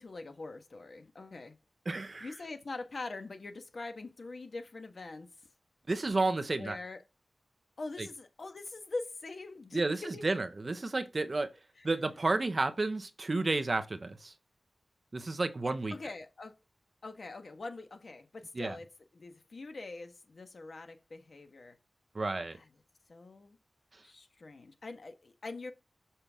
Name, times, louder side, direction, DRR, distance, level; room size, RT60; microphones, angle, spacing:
voice 1, 0.0-1.6 2.2-5.3 6.5-7.0 7.8-9.8 10.1-10.2 11.8-11.9 15.9-16.6 17.0-18.9 19.1-21.8 22.5-22.7 23.1-23.6 24.0-25.7, left 3 dB, 60° left, 1.4 m, -43 dB
voice 2, 1.9-2.3 5.9-6.8 9.7-11.5 11.8-14.3 15.1-15.9 18.5-18.8 22.1-22.6, right 3 dB, 40° right, 0.9 m, -31 dB
6.9 x 5.8 x 3.6 m
wide cardioid pair, 110°, 0 cm